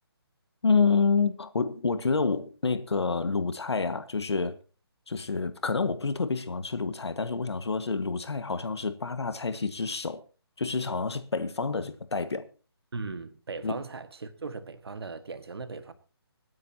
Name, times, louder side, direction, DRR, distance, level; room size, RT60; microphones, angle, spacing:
voice 1, 0.6-4.6 5.1-10.2 10.6-12.5 13.6-13.8, left 4 dB, 90° left, 1.6 m, -28 dB
voice 2, 12.9-15.9, right 4 dB, 70° right, 1.7 m, -38 dB
26.0 x 9.7 x 2.8 m
hypercardioid pair, 170°, 13 cm